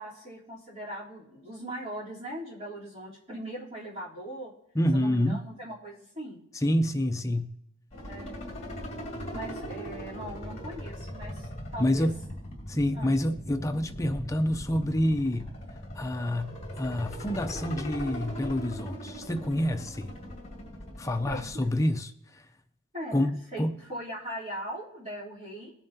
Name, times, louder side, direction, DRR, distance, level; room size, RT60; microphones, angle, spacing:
voice 1, 0.0-4.5 4.9-6.4 8.1-8.5 9.3-12.1 12.9-13.1 21.3-21.6 22.9-23.6 23.9-25.7, right 1 dB, 35° right, 3.4 m, -40 dB
voice 2, 4.7-5.4 6.5-7.5 11.8-12.2 12.7-15.5 15.9-20.1 21.0-22.5 23.1-23.8, left 1 dB, 15° left, 0.6 m, -28 dB
sound 1, 7.9-21.7, equal, 35° left, 2.3 m, -40 dB
20.5 x 7.2 x 2.8 m
head